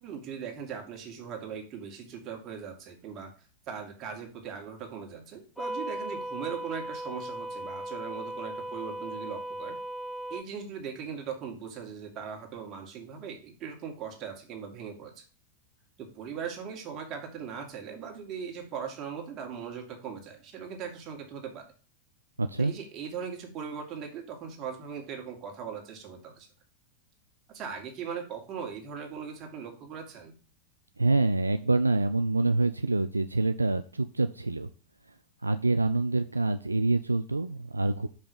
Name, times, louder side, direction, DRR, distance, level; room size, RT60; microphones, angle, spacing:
voice 1, 0.0-3.3 3.7-9.8 10.3-15.2 16.0-21.7 22.6-26.5 27.5-30.3, right 7 dB, 35° right, 2 dB, 2.1 m, -39 dB
sound 1, 5.6-10.4, right 1 dB, 5° left, 0.4 m, -37 dB
voice 2, 22.4-22.7 31.0-34.7 35.4-38.1, right 2 dB, 80° right, 10 dB, 0.3 m, -26 dB
5.8 x 5.4 x 6.7 m, 0.40 s
figure-of-eight pair, 90°, 0 cm